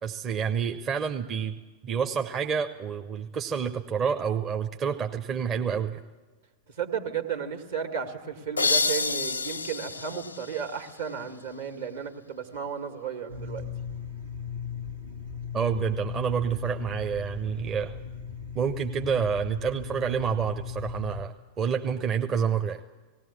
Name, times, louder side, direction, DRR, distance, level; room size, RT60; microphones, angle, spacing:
voice 1, 0.0-1.6 1.8-6.0 15.5-18.0 18.5-22.8, right 6 dB, 30° right, 5 dB, 0.7 m, -28 dB
voice 2, 6.8-13.6, right 7 dB, 65° right, 6 dB, 1.9 m, -34 dB
sound 1, 8.6-11.3, left 4 dB, 80° left, 0.5 m, -29 dB
sound 2, 13.3-21.2, left 7 dB, 85° right, 1.7 m, -37 dB
19.0 x 17.0 x 8.4 m, 1.3 s
figure-of-eight pair, 90°, 0 cm